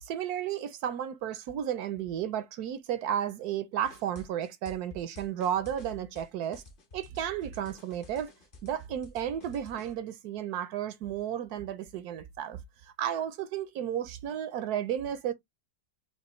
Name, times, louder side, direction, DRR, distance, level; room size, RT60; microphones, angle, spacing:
voice 1, 0.0-6.6 6.9-8.3 8.6-15.3, right 10 dB, 70° right, 0.9 m, -33 dB
sound 1, 3.8-9.9, left 2 dB, 45° left, 0.7 m, -51 dB
5.2 x 2.3 x 3.0 m
omnidirectional pair, 2.0 m